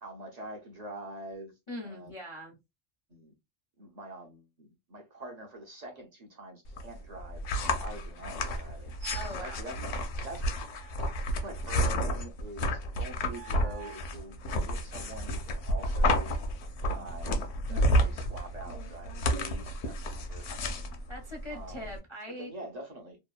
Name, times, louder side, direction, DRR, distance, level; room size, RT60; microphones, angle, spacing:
voice 1, 0.0-1.5 1.8-2.1 3.1-3.3 3.8-8.9 9.3-10.4 11.4-16.3 16.8-17.4 17.7-20.9 21.5-22.0 22.3-23.2, right 2 dB, 50° right, 0.5 m, -45 dB
voice 2, 1.7-2.5 9.1-9.7 17.7-18.1 21.1-22.5, left 1 dB, 40° left, 0.4 m, -42 dB
sound 1, 6.7-22.0, equal, 75° left, 1.0 m, -31 dB
sound 2, 9.0-9.5 10.7-11.9 13.2-14.1, right 5 dB, 85° right, 1.0 m, -47 dB
2.8 x 2.2 x 2.3 m
omnidirectional pair, 1.4 m